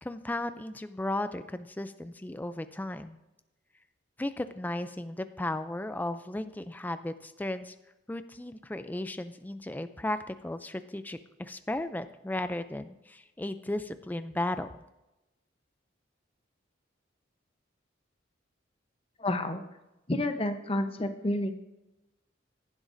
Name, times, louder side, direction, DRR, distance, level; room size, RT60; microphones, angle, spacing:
voice 1, 0.0-3.2 4.2-7.7 8.1-14.7, left 1 dB, 10° left, 11 dB, 0.3 m, -35 dB
voice 2, 19.2-19.6 20.1-21.6, left 1 dB, 30° left, 8 dB, 0.8 m, -30 dB
15.0 x 11.0 x 2.6 m, 0.96 s
head